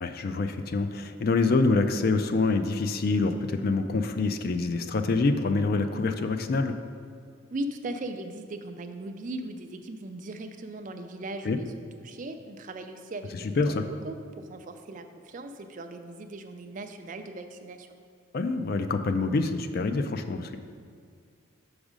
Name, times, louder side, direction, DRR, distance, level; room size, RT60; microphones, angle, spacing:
voice 1, 0.0-6.7 11.4-11.6 13.3-13.8 18.3-20.6, left 3 dB, 45° left, 8 dB, 0.3 m, -26 dB
voice 2, 7.5-17.9, right 2 dB, 40° right, 7 dB, 0.4 m, -38 dB
6.3 x 4.8 x 5.0 m, 2.1 s
head